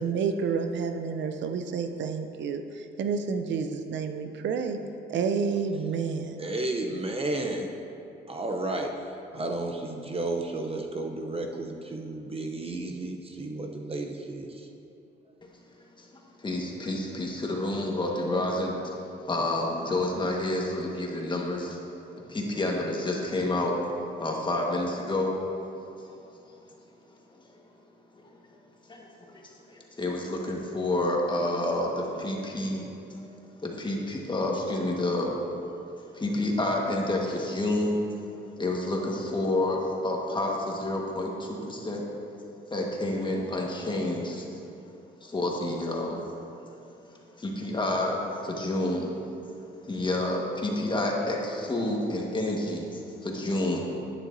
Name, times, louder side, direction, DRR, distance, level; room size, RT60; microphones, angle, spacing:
voice 1, 0.0-4.8 5.1-6.4, right 5 dB, 65° right, 7 dB, 0.5 m, -29 dB
voice 2, 6.4-7.7 8.3-8.9 9.3-14.7, right 2 dB, 30° right, 2 dB, 0.7 m, -32 dB
voice 3, 16.4-19.0 19.3-21.8 22.1-23.8 24.2-25.4 26.0-26.1 28.9-35.4 36.1-38.0 38.6-42.0 42.7-44.6 45.2-46.2 47.4-49.1 49.9-53.9, left 1 dB, 25° left, -1 dB, 1.5 m, -29 dB
10.5 x 9.2 x 2.7 m, 2.8 s
cardioid pair, 90°, 20 cm